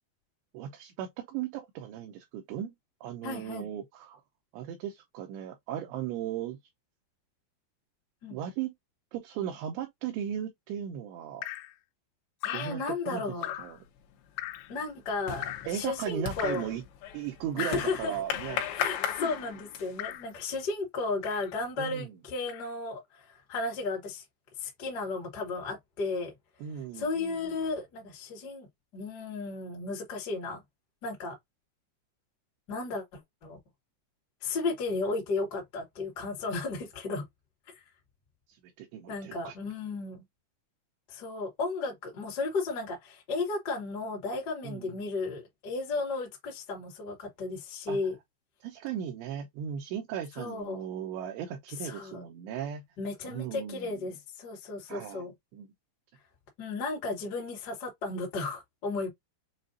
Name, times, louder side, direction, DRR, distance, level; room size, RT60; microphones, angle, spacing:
voice 1, 0.5-2.7 3.0-4.2 4.5-6.6 8.3-8.7 9.1-11.5 12.5-13.2 13.6-13.8 15.7-16.8 17.1-18.7 21.8-22.1 26.6-27.3 38.5-39.6 44.6-44.9 47.9-48.0 48.6-52.8 53.3-54.0 54.9-55.2 55.5-55.7, right 10 dB, 80° right, 2.9 m, -37 dB
voice 2, 3.2-3.7 8.2-8.4 12.4-13.5 14.7-16.7 17.6-18.2 18.7-24.2 24.6-26.3 26.9-28.7 28.9-30.6 31.0-31.3 32.7-33.6 34.4-37.2 39.1-40.2 41.1-48.1 50.4-50.8 51.8-52.2 53.0-55.3 56.6-59.1, left 3 dB, 40° left, 1.5 m, -34 dB
Drip, 11.4-11.7 12.4-12.8 13.4-13.8 14.4-14.7 15.4-15.8 16.4-16.8 17.6-17.9 18.8-19.1 20.0-20.3 21.2-21.6 22.5-22.7, left 15 dB, 90° left, 3.0 m, -38 dB
sound 1, 13.6-14.0 14.3-20.1, left 10 dB, 70° left, 2.7 m, -37 dB
7.4 x 2.5 x 2.6 m
omnidirectional pair, 5.2 m